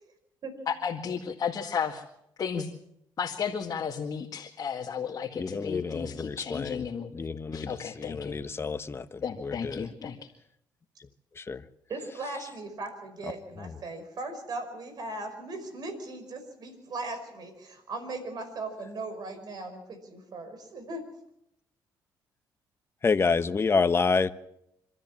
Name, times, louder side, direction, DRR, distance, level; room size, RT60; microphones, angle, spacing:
voice 1, 0.7-2.0 2.4-2.7 3.2-8.4 9.2-10.2, left 6 dB, 50° left, 0 dB, 2.0 m, -33 dB
voice 2, 5.4-6.8 7.1-9.9 11.4-11.6 13.6-13.7 23.0-24.3, left 4 dB, 30° left, 12 dB, 1.1 m, -28 dB
voice 3, 11.9-21.0, right 2 dB, 55° right, 8 dB, 5.4 m, -38 dB
26.0 x 13.5 x 7.5 m, 0.80 s
cardioid pair, 80°, 8 cm